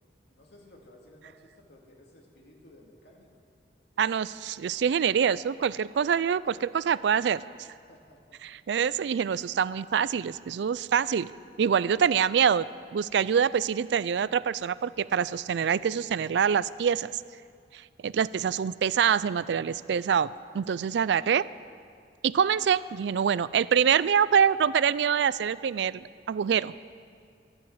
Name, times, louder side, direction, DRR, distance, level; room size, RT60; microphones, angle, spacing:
voice 1, 0.4-3.3 3.7-4.4 7.9-8.6, left 1 dB, 75° left, 0 dB, 2.2 m, -56 dB
voice 2, 4.0-7.4 8.4-11.3 11.6-12.7 12.9-17.2 17.7-21.4 22.2-26.7, right 7 dB, 85° right, 18 dB, 0.4 m, -25 dB
12.0 x 11.5 x 7.8 m, 2.3 s
head